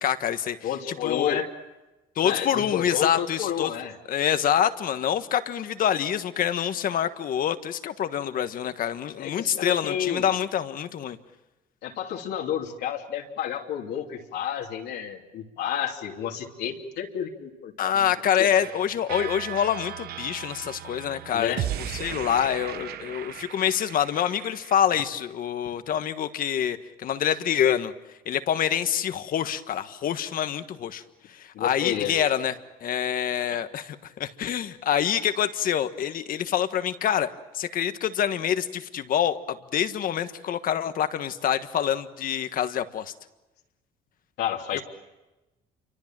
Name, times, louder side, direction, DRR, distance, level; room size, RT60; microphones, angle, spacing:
voice 1, 0.0-0.6 1.0-1.4 2.2-3.7 4.1-11.2 17.8-21.5 22.0-27.9 28.2-31.0 31.3-32.5 32.8-43.1, left 9 dB, 55° left, 10 dB, 1.5 m, -26 dB
voice 2, 0.6-1.5 2.2-4.0 9.1-10.3 11.8-18.1 18.4-18.5 21.3-21.7 31.5-32.2 44.4-44.8, left 9 dB, 80° left, 0 dB, 3.0 m, -31 dB
sound 1, 18.5-24.7, right 11 dB, 65° right, 0.9 m, -36 dB
28.5 x 24.5 x 7.6 m, 1.1 s
cardioid pair, 110°, 17 cm